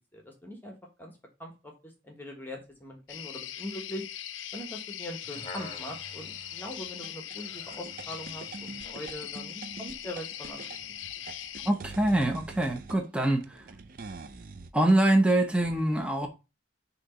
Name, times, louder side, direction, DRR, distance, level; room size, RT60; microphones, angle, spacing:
voice 1, 0.1-1.1 1.4-1.7 2.0-4.1 4.5-10.7, equal, 10° left, 1.3 m, -41 dB
sound 1, 3.1-11.7, left 11 dB, 75° left, 0.5 m, -41 dB
sound 2, 5.0-9.1 9.7-9.8, left 2 dB, 25° left, 1.2 m, -48 dB
sound 3, 7.0-14.7, right 4 dB, 45° right, 0.5 m, -45 dB
voice 2, 11.7-13.6 14.7-16.3, right 1 dB, 5° right, 0.7 m, -24 dB
6.3 x 2.9 x 5.5 m
head